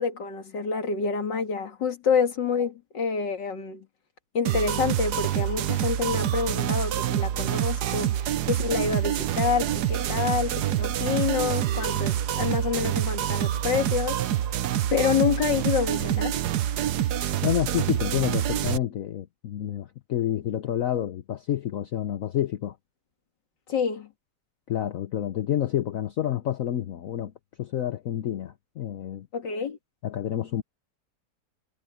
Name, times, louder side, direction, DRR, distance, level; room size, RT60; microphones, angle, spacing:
voice 1, 0.0-3.9 4.3-8.2 8.4-14.2 14.9-16.4 23.7-24.1 29.3-29.8, left 6 dB, 85° left, 2.8 m, -27 dB
sound 1, 4.5-18.8, right 11 dB, 70° right, 1.3 m, -26 dB
voice 2, 17.4-22.8 24.7-27.3 27.6-29.3 30.0-30.6, left 11 dB, 60° left, 1.1 m, -29 dB
omnidirectional pair, 1.9 m